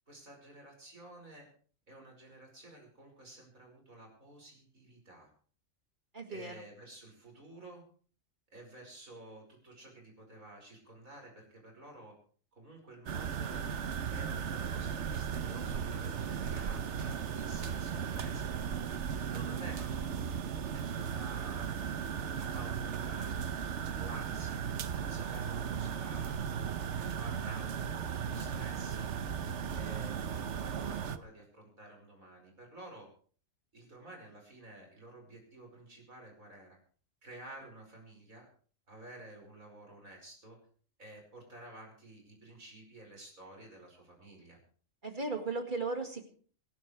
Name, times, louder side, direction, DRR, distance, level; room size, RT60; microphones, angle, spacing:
voice 1, 0.1-1.5 1.9-5.3 6.3-7.8 8.5-12.1 12.5-13.6 14.1-18.5 19.2-20.1 20.7-22.0 22.3-23.3 23.9-26.4 26.9-29.1 29.7-33.1 33.7-36.8 37.2-38.5 38.9-40.6 41.0-44.6, right 1 dB, 85° right, 1 dB, 5.8 m, -51 dB
voice 2, 6.1-6.6 45.0-46.3, right 3 dB, 35° right, 4 dB, 2.2 m, -36 dB
sound 1, 13.1-31.2, right 7 dB, 60° right, 1.1 m, -36 dB
27.0 x 11.5 x 3.3 m, 0.43 s
omnidirectional pair, 1.4 m